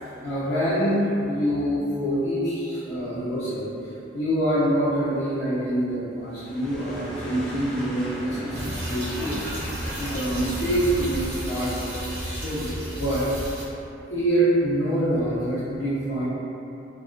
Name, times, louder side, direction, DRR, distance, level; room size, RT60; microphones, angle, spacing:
voice 1, 0.0-3.7 4.1-9.5 10.0-13.5 14.1-16.2, right 1 dB, 70° left, -13 dB, 0.6 m, -26 dB
sound 1, 6.3-11.5, equal, 5° left, 0.3 m, -35 dB
sound 2, 8.5-13.6, equal, 55° right, 0.7 m, -34 dB
2.3 x 2.1 x 2.5 m, 2.8 s
head